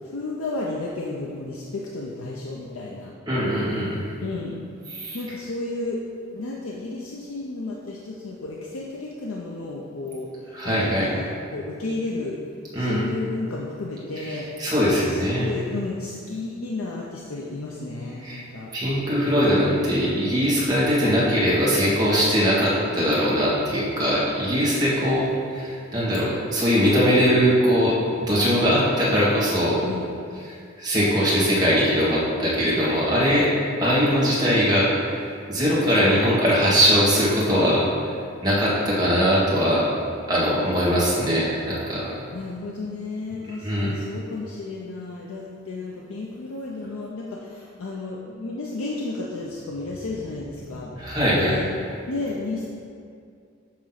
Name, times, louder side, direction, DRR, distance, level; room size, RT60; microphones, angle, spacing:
voice 1, 0.1-3.1 4.2-4.5 5.1-6.0 6.3-10.3 10.6-12.4 12.8-14.5 15.1-19.3 25.0-25.1 29.8-30.1 39.2-39.4 42.3-50.9 51.3-51.7 52.1-52.7, left 3 dB, 80° left, -3 dB, 0.6 m, -32 dB
voice 2, 3.3-4.0 4.9-5.2 10.5-11.1 12.7-13.0 14.2-15.5 18.2-18.4 18.7-29.8 30.8-33.5 33.8-34.9 35.5-37.8 38.4-39.8 40.3-42.1 43.6-43.9 51.0-51.6, equal, 20° right, -8 dB, 1.6 m, -21 dB
7.4 x 3.1 x 5.6 m, 2.3 s
head